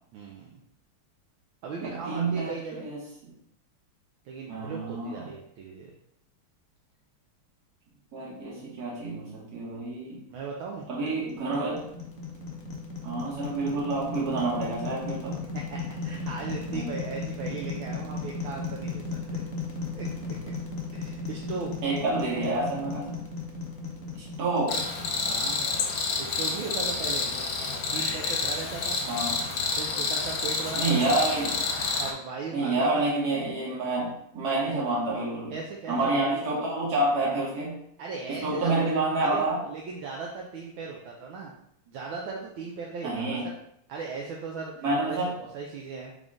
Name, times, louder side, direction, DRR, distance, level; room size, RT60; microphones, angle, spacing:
voice 1, 0.1-0.6 1.6-2.9 4.2-5.9 10.3-10.8 15.5-19.0 19.3-19.4 19.9-20.1 20.9-21.7 25.2-25.7 26.2-27.3 27.9-29.0 29.7-31.0 32.0-33.0 35.5-36.3 38.0-38.9 39.2-41.5 41.9-43.5 43.9-46.1, right 4 dB, 75° right, -1 dB, 1.3 m, -37 dB
voice 2, 1.8-3.0 4.5-5.3 8.1-10.2 10.9-11.8 13.0-15.4 16.7-16.9 21.8-23.1 24.4-24.8 29.1-29.5 30.7-31.6 32.5-35.5 35.9-37.8 38.4-39.6 43.0-43.5 44.8-45.3, right 2 dB, 50° right, -4 dB, 1.7 m, -28 dB
sound 1, 10.8-26.0, left 3 dB, 85° left, 0.6 m, -36 dB
Cricket, 24.7-32.1, left 4 dB, 65° left, 1.3 m, -29 dB
3.8 x 3.6 x 3.6 m, 0.72 s
omnidirectional pair, 2.4 m